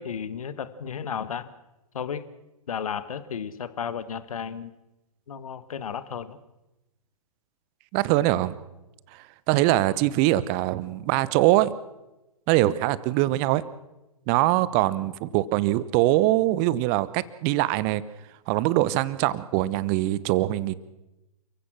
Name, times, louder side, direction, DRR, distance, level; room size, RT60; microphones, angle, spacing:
voice 1, 0.0-1.5 1.9-2.2 2.7-4.7 5.3-6.4, left 7 dB, 65° left, 14 dB, 1.5 m, -33 dB
voice 2, 7.9-8.6 9.1-11.7 12.5-13.6 14.3-18.0 18.5-20.7, right 16 dB, 35° right, 18 dB, 1.0 m, -23 dB
29.0 x 15.5 x 6.2 m, 0.99 s
figure-of-eight pair, 115°, 19 cm